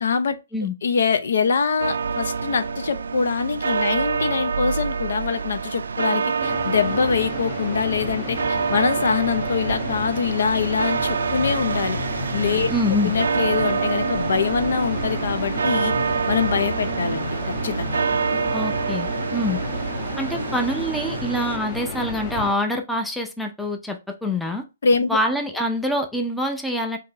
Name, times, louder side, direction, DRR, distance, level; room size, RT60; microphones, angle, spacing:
voice 1, 0.0-0.4 0.8-12.0 12.3-12.7 13.0-15.9 16.3-18.0 24.8-25.2, left 6 dB, 75° left, 0.6 m, -24 dB
sound 1, 1.8-21.6, right 5 dB, 90° right, 0.3 m, -26 dB
sound 2, 6.4-22.5, left 2 dB, 25° left, 1.2 m, -32 dB
voice 2, 12.7-13.1 18.5-19.6 20.2-24.6 25.1-27.0, left 1 dB, 5° left, 0.6 m, -25 dB
3.7 x 2.8 x 3.9 m
hypercardioid pair, 150°, 0 cm